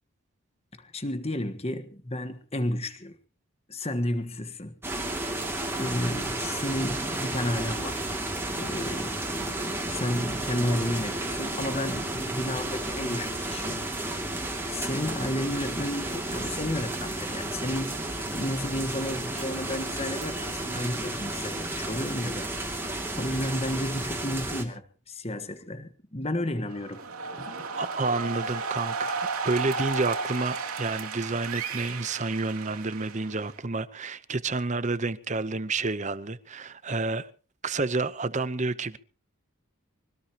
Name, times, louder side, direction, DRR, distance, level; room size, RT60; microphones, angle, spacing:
voice 1, 0.8-3.2 3.7-4.7 5.8-8.1 8.5-9.5 9.8-14.3 14.7-18.0 18.3-22.6 23.1-27.1 27.4-27.5, left 1 dB, 30° left, 1.4 m, -32 dB
sound 1, 4.8-24.6, right 1 dB, 10° right, 2.5 m, -32 dB
sound 2, 26.7-33.6, right 4 dB, 85° right, 3.0 m, -34 dB
voice 2, 27.5-37.3 37.6-39.0, right 3 dB, 35° right, 0.8 m, -30 dB
24.5 x 18.0 x 3.0 m
head